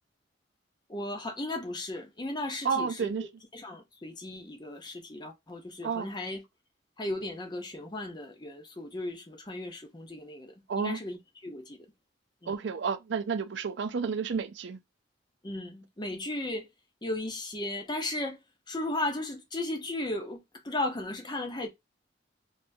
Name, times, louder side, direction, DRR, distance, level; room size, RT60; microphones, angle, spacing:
voice 1, 0.9-6.4 7.0-11.8 12.4-12.6 15.4-16.7 17.0-18.4 18.7-21.7, left 1 dB, 25° left, 0.8 m, -36 dB
voice 2, 2.6-3.2 5.8-6.1 10.7-11.0 12.5-14.8, right 5 dB, 70° right, 0.4 m, -31 dB
3.4 x 2.8 x 2.6 m
head